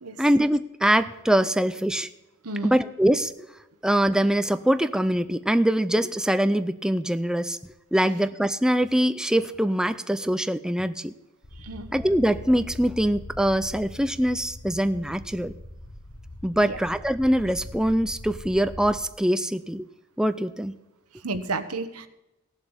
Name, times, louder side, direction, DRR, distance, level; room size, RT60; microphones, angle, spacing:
voice 1, 0.2-2.1 2.6-3.3 3.8-7.6 7.9-11.1 11.9-15.5 16.4-19.9 20.2-20.8, right 1 dB, 5° right, 11 dB, 0.4 m, -23 dB
voice 2, 2.4-2.8 11.6-11.9 16.6-16.8 21.2-22.1, right 3 dB, 85° right, 10 dB, 1.2 m, -31 dB
sound 1, 11.4-19.0, left 2 dB, 40° left, 1.3 m, -42 dB
17.5 x 7.5 x 7.2 m, 0.95 s
head